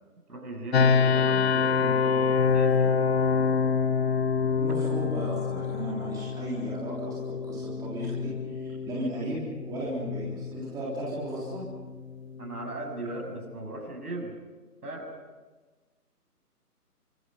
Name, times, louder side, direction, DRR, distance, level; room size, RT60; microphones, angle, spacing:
voice 1, 0.3-3.0 12.4-14.3 14.8-15.1, right 2 dB, 70° right, 2 dB, 7.1 m, -38 dB
sound 1, 0.7-13.5, left 6 dB, 40° left, 1.1 m, -27 dB
voice 2, 4.6-11.6, right 1 dB, 10° right, -5 dB, 3.6 m, -35 dB
27.0 x 25.0 x 5.4 m, 1.3 s
figure-of-eight pair, 150°, 47 cm